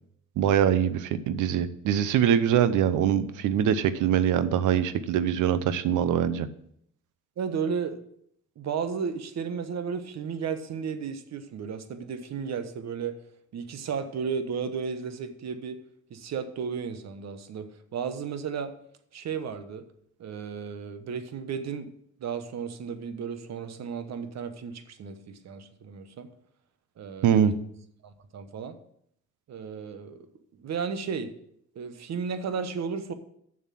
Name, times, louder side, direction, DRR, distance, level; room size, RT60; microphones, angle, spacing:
voice 1, 0.4-6.5 27.2-27.5, right 9 dB, 85° right, 14 dB, 0.8 m, -23 dB
voice 2, 7.4-8.0 8.6-13.2 13.5-15.8 16.1-18.7 19.1-19.8 20.2-21.9 22.2-26.3 27.0-27.5 28.0-28.8 29.5-30.2 30.6-31.3 31.7-33.1, right 6 dB, 60° right, 10 dB, 1.1 m, -34 dB
7.1 x 6.5 x 7.5 m, 0.71 s
cardioid pair, 90°, 30 cm